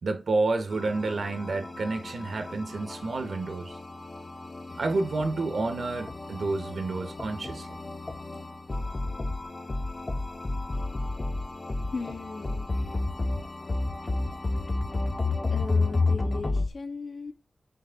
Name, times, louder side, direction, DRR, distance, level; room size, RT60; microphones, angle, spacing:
voice 1, 0.0-3.8 4.8-7.7, right 3 dB, 75° right, 1.7 m, -29 dB
sound 1, 0.7-16.7, left 3 dB, 35° left, 1.2 m, -32 dB
voice 2, 11.8-12.8 15.5-17.3, left 4 dB, 75° left, 2.2 m, -37 dB
8.6 x 3.4 x 4.1 m
wide cardioid pair, 110°, 0 cm